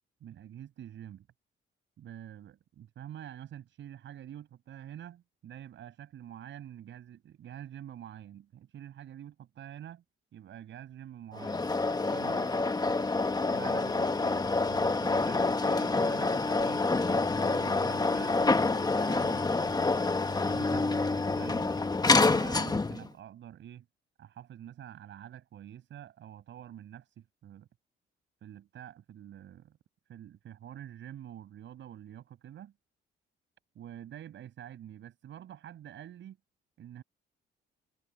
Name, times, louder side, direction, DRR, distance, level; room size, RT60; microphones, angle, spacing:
voice 1, 0.2-1.3 2.0-10.0 10.3-11.6 12.1-12.5 13.5-16.9 17.2-20.1 20.5-21.8 22.1-23.9 24.2-27.7 28.4-29.8 30.1-32.7 33.7-36.4 36.8-37.0, right 10 dB, 70° right, 5.9 m, -47 dB
sound 1, 11.4-23.1, left 3 dB, 20° left, 1.3 m, -27 dB
cardioid pair, 90°, 20 cm